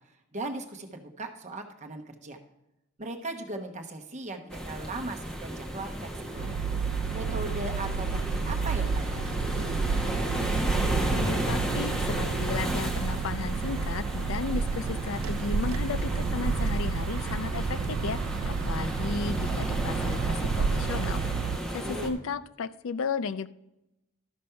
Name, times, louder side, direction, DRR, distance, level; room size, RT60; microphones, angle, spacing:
voice 1, 0.3-2.4 3.0-6.5 7.1-8.1 8.5-9.2 9.5-9.7 21.4-22.1, right 2 dB, 30° right, 3 dB, 1.0 m, -38 dB
sound 1, 4.5-22.1, right 1 dB, 5° left, 1.1 m, -33 dB
sound 2, 6.4-21.6, right 5 dB, 65° right, 0.3 m, -30 dB
voice 2, 10.9-18.2 18.4-21.2 21.7-23.5, left 5 dB, 65° left, 16 dB, 0.4 m, -34 dB
13.0 x 5.2 x 5.7 m, 0.89 s
head